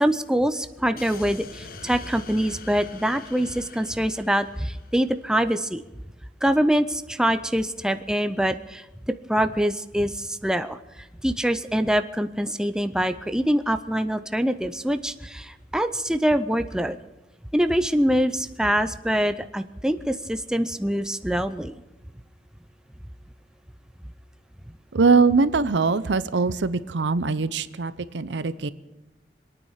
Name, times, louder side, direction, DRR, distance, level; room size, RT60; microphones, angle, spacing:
voice 1, 0.0-5.8 6.4-8.8 9.3-10.8 11.2-17.0 17.5-21.8, equal, 5° right, 8 dB, 0.5 m, -24 dB
sound 1, 1.0-5.3, left 4 dB, 55° left, 1.0 m, -44 dB
voice 2, 24.9-28.7, right 4 dB, 85° right, 15 dB, 0.7 m, -22 dB
26.0 x 9.4 x 5.7 m, 1.1 s
head